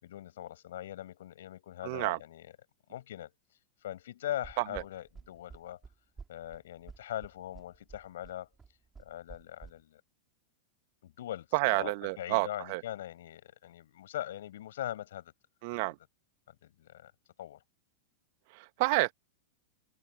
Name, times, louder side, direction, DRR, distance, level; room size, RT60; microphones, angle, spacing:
voice 1, 0.0-2.6 2.9-3.3 3.8-5.8 6.3-8.5 9.0-10.0 11.0-15.3 15.7-15.9 16.5-17.1 17.4-17.6, left 12 dB, 65° left, 7.0 m, -41 dB
voice 2, 1.8-2.2 11.5-12.8 15.6-16.0 18.6-19.1, right 27 dB, 50° right, 1.8 m, -29 dB
sound 1, 4.4-9.7, right 5 dB, 15° right, 5.7 m, -50 dB
figure-of-eight pair, 90°, 0 cm